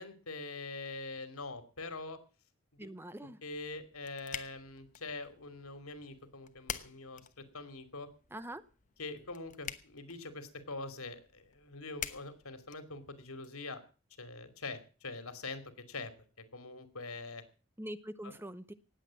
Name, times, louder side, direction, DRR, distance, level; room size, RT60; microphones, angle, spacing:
voice 1, 0.0-2.2 2.7-2.9 3.4-7.3 7.5-8.1 9.0-13.8 14.2-15.6 15.9-16.1 16.5-17.4 18.2-18.3, left 3 dB, 90° left, 10 dB, 2.7 m, -44 dB
voice 2, 2.8-3.4 8.3-8.6 17.8-18.7, right 1 dB, 10° right, 13 dB, 0.7 m, -43 dB
sound 1, 3.5-13.5, left 8 dB, 35° left, 1.0 m, -48 dB
18.5 x 8.2 x 7.5 m, 0.37 s
head